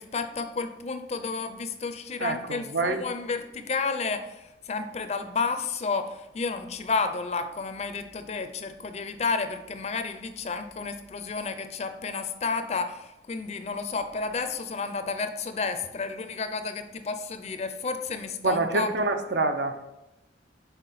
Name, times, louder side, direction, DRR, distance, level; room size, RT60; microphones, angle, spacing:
voice 1, 0.0-18.9, left 4 dB, 35° left, 9 dB, 0.4 m, -31 dB
voice 2, 2.2-3.0 18.4-19.9, right 3 dB, 65° right, 7 dB, 0.6 m, -26 dB
5.7 x 4.4 x 4.1 m, 0.92 s
head